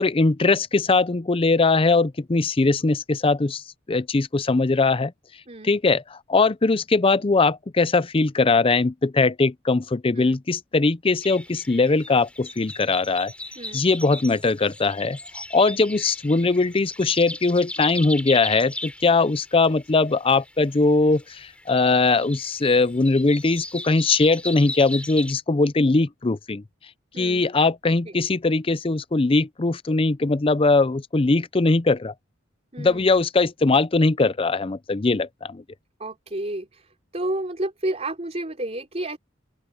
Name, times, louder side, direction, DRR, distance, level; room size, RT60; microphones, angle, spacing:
voice 1, 0.0-5.1 5.6-13.3 13.7-15.2 15.5-26.6 27.2-32.1 32.8-35.6, left 3 dB, 30° left, 0.5 m, -21 dB
sound 1, 11.2-25.3, left 1 dB, 5° left, 5.3 m, -38 dB
voice 2, 27.1-27.5 27.9-28.2 32.7-33.2 36.0-39.2, right 1 dB, 35° right, 3.7 m, -31 dB
open air
head